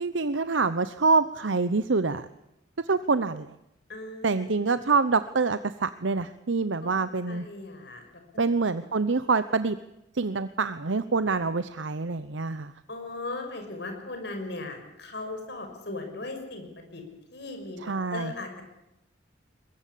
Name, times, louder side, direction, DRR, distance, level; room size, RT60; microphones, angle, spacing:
voice 1, 0.0-2.3 2.8-3.5 4.2-7.5 8.4-9.8 10.1-12.7 17.8-18.3, right 4 dB, 75° right, 12 dB, 0.8 m, -26 dB
voice 2, 3.9-4.7 6.8-8.4 12.9-17.0 17.3-18.6, left 2 dB, 60° left, 5 dB, 6.1 m, -38 dB
22.0 x 22.0 x 8.5 m, 0.86 s
head